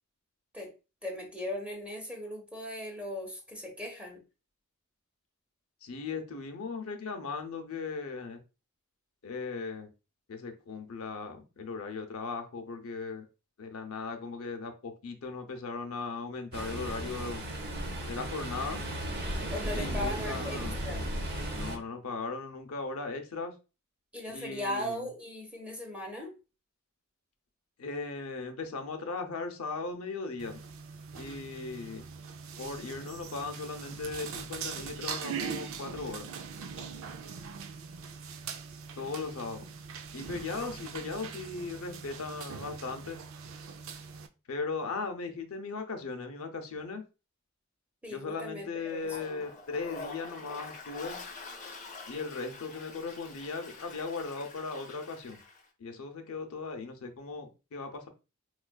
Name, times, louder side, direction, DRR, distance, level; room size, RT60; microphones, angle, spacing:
voice 1, 1.0-4.2 19.5-21.0 24.1-26.3 40.6-40.7 48.0-49.4, left 1 dB, 5° right, 1 dB, 1.0 m, -38 dB
voice 2, 5.8-8.4 9.2-9.9 10.3-13.3 13.6-17.4 18.1-18.9 19.7-20.8 21.5-23.6 24.3-25.0 27.8-30.6 31.1-32.1 32.6-36.3 39.0-39.7 40.1-43.2 44.5-47.0 48.1-51.2 52.1-55.4 55.8-58.1, left 4 dB, 80° left, 5 dB, 0.6 m, -38 dB
Ocean, 16.5-21.8, right 1 dB, 50° right, 0.8 m, -35 dB
sound 1, 30.4-44.3, right 6 dB, 65° right, 0.4 m, -42 dB
Toilet flush, 48.9-55.6, left 4 dB, 35° left, 0.7 m, -46 dB
4.4 x 2.4 x 2.2 m, 0.31 s
head